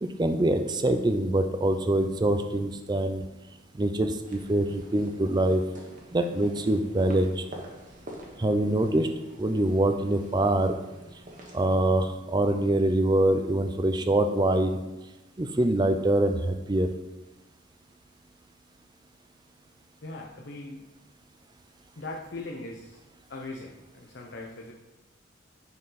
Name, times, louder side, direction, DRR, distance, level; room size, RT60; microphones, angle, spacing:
voice 1, 0.0-3.2 3.8-5.6 6.1-7.4 8.4-9.1 9.4-10.7 11.5-14.8 15.4-16.9, right 1 dB, 20° right, 7 dB, 0.4 m, -24 dB
sound 1, 4.2-11.8, right 1 dB, 40° right, 1.3 m, -47 dB
voice 2, 20.0-20.8 22.0-23.0 23.3-24.7, left 2 dB, 55° left, 0 dB, 0.7 m, -40 dB
9.3 x 4.5 x 4.1 m, 1.1 s
head